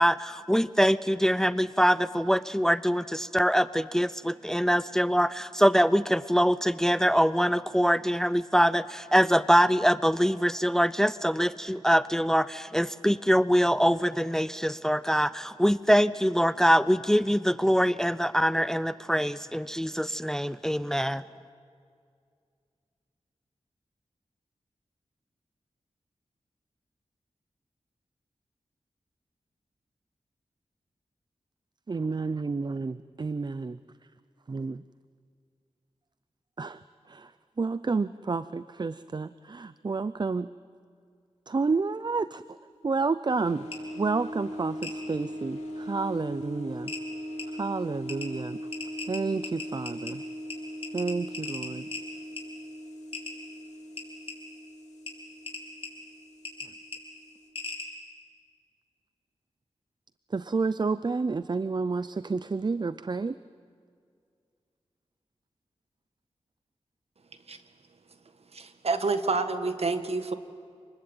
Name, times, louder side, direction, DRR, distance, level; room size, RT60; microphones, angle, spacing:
voice 1, 0.0-21.2, equal, 5° left, 16 dB, 0.6 m, -24 dB
voice 2, 31.9-33.8 34.5-34.8 36.6-36.8 37.1-37.3 37.6-40.5 41.5-42.6 42.8-43.7 44.0-46.9 47.5-48.6 49.1-50.2 50.9-51.9 60.3-63.4, right 4 dB, 40° right, 15 dB, 0.6 m, -30 dB
sound 1, 43.3-57.5, equal, 85° left, 2.6 m, -40 dB
sound 2, 43.7-43.8 44.8-44.9 46.3-46.4 46.9-47.0 47.4-47.5 48.1-48.3 48.7-50.1 50.5-50.6 50.8-52.0 52.4-52.5 53.1-53.3 54.0-54.4 55.1-55.2 55.5-55.9 56.4-56.7 56.9-57.0 57.6-57.9, left 4 dB, 55° left, 5.2 m, -37 dB
voice 3, 68.5-70.3, right 3 dB, 65° right, 9 dB, 1.7 m, -28 dB
27.5 x 20.5 x 9.1 m, 2.3 s
cardioid pair, 50°, 11 cm